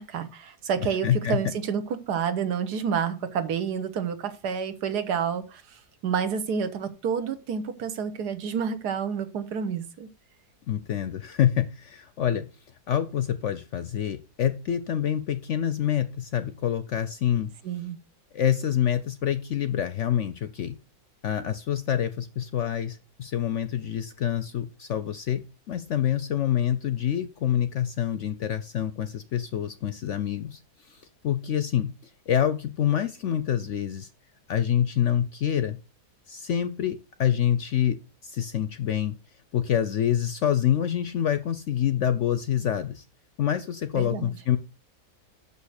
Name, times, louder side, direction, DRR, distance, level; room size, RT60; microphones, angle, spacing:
voice 1, 0.0-10.1 17.6-18.0 43.9-44.3, right 7 dB, 80° right, 11 dB, 1.5 m, -29 dB
voice 2, 1.0-1.4 10.7-12.5 12.9-17.5 18.3-20.8 21.2-30.6 30.9-31.9 32.3-34.1 34.5-35.8 36.3-38.0 38.2-39.1 39.5-43.0 43.4-44.6, left 10 dB, 65° left, 12 dB, 0.7 m, -26 dB
6.3 x 5.6 x 6.4 m, 0.32 s
omnidirectional pair, 1.7 m